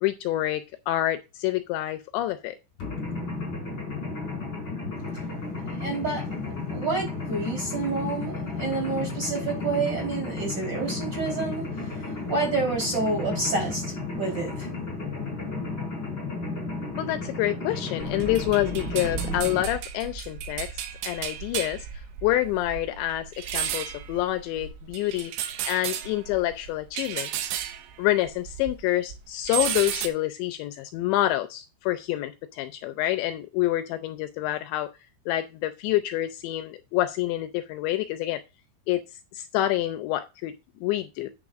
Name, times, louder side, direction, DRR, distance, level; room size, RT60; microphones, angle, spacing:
voice 1, 0.0-2.6 17.0-20.8 21.0-21.9 22.2-25.3 25.6-27.3 28.0-34.9 35.3-38.4 38.9-39.0 39.3-41.3, left 14 dB, 80° left, 2.8 m, -27 dB
Mechanisms, 2.8-19.6, left 3 dB, 25° left, 6.0 m, -33 dB
voice 2, 5.7-6.2 6.7-14.7, right 3 dB, 25° right, 4.3 m, -29 dB
sound 1, 18.0-28.8 29.1-30.1, right 9 dB, 80° right, 3.3 m, -34 dB
9.5 x 9.0 x 2.5 m
omnidirectional pair, 5.5 m